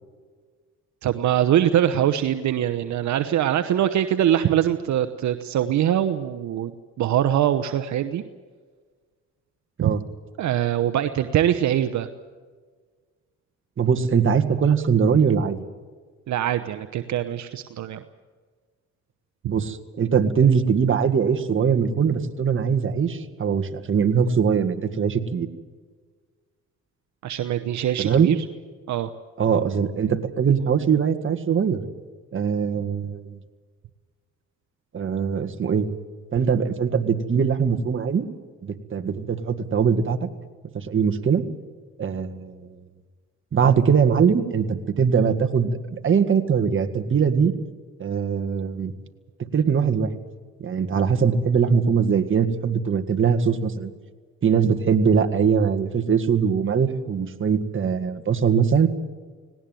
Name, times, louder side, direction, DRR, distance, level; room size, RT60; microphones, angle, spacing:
voice 1, 1.0-6.7 7.0-8.2 9.8-9.9 10.4-12.1 16.3-18.0 27.2-28.4 28.9-29.1, right 11 dB, 70° right, 9 dB, 1.0 m, -23 dB
voice 2, 13.8-15.6 19.4-25.5 28.0-28.4 29.4-31.8 32.3-33.4 34.9-35.9 36.3-38.3 38.6-40.3 40.7-41.4 42.0-42.8 43.5-47.5 48.0-48.9 49.5-50.1 50.6-53.9 54.4-58.9, right 6 dB, 40° right, 7 dB, 1.8 m, -21 dB
18.5 x 18.5 x 9.2 m, 1.5 s
cardioid pair, 90°, 30 cm